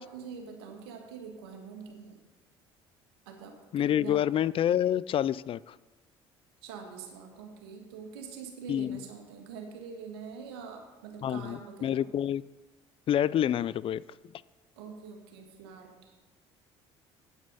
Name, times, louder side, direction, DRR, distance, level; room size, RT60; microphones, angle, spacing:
voice 1, 0.0-2.2 3.2-4.3 6.6-12.1 14.8-16.2, right 5 dB, 85° right, 1.7 m, -44 dB
voice 2, 3.7-5.7 8.7-9.0 11.2-12.4 13.1-14.0, left 10 dB, 45° left, 0.4 m, -27 dB
9.0 x 8.7 x 5.4 m
hypercardioid pair, 65°, 13 cm